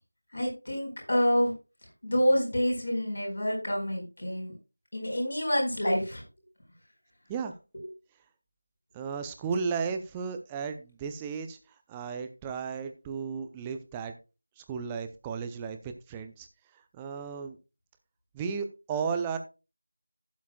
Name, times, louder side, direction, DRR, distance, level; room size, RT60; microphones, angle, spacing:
voice 1, 0.3-1.5 2.0-4.5 4.9-6.2, equal, 50° left, 0 dB, 4.4 m, -27 dB
voice 2, 8.9-11.6 11.9-14.1 14.6-16.5 16.9-17.6 18.3-19.4, right 5 dB, 5° right, 8 dB, 0.5 m, -34 dB
15.5 x 7.2 x 2.2 m, 0.29 s
figure-of-eight pair, 170°, 0 cm